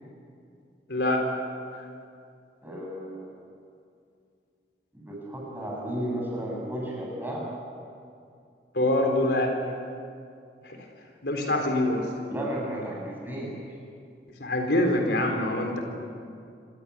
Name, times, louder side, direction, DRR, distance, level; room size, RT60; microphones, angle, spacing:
voice 1, 0.9-1.2 8.7-9.5 10.6-10.8 11.2-12.1 14.4-15.8, left 1 dB, 70° left, 2 dB, 4.0 m, -24 dB
voice 2, 2.6-3.3 4.9-7.4 12.3-13.5, right 1 dB, 10° right, -3 dB, 7.2 m, -33 dB
27.5 x 17.0 x 9.6 m, 2.4 s
head